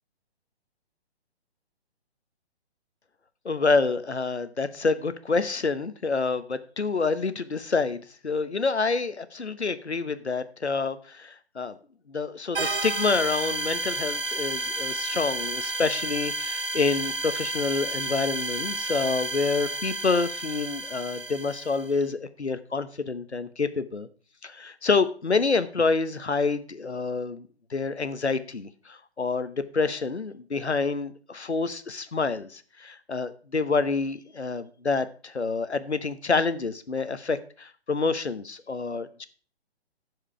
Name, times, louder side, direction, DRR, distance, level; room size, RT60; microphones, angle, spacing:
voice 1, 3.4-11.8 12.1-24.1 24.4-39.3, left 4 dB, 80° left, 12 dB, 1.0 m, -27 dB
sound 1, 12.5-21.9, right 2 dB, 55° right, 1.9 m, -31 dB
14.5 x 5.0 x 4.8 m, 0.40 s
figure-of-eight pair, 130°, 33 cm